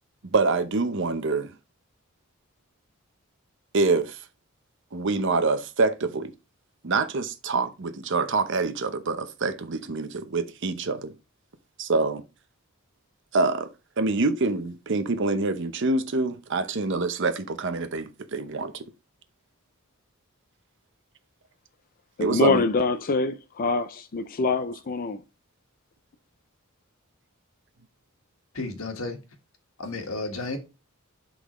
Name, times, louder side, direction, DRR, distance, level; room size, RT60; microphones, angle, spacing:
voice 1, 0.2-1.5 3.7-4.2 4.9-6.3 6.8-11.1 11.8-12.2 13.3-13.7 14.0-18.8 22.2-22.6, right 3 dB, 60° right, 0.8 m, -26 dB
voice 2, 22.2-25.2, left 3 dB, 40° left, 0.4 m, -25 dB
voice 3, 28.5-29.2 29.8-30.6, left 3 dB, 75° left, 1.6 m, -32 dB
11.5 x 3.9 x 3.1 m
head